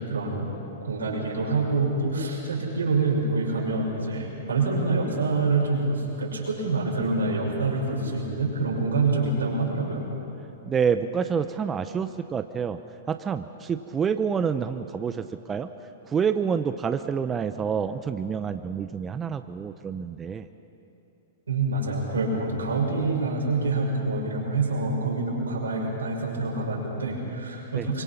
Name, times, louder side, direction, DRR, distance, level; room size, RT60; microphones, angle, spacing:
voice 1, 0.1-0.5 0.8-10.1 21.5-28.0, right 3 dB, 85° right, -3 dB, 6.2 m, -26 dB
voice 2, 10.7-12.8 13.1-15.7 16.0-20.5 27.8-27.9, right 6 dB, 20° right, 9 dB, 0.7 m, -28 dB
25.0 x 23.0 x 5.9 m, 2.9 s
hypercardioid pair, 110°, 0 cm